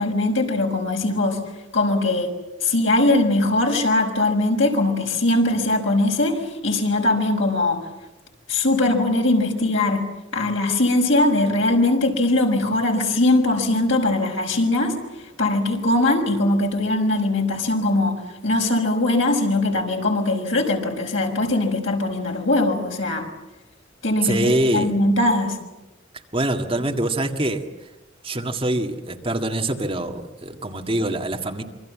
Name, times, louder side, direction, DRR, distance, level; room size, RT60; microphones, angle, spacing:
voice 1, 0.0-1.4 1.7-2.3 2.6-7.8 8.5-10.0 10.3-23.3 24.0-25.6, left 2 dB, 85° left, 2 dB, 6.1 m, -21 dB
voice 2, 24.2-24.9 26.3-27.7 28.2-31.6, right 1 dB, 30° right, 3 dB, 1.9 m, -24 dB
27.5 x 25.0 x 7.5 m, 1.0 s
head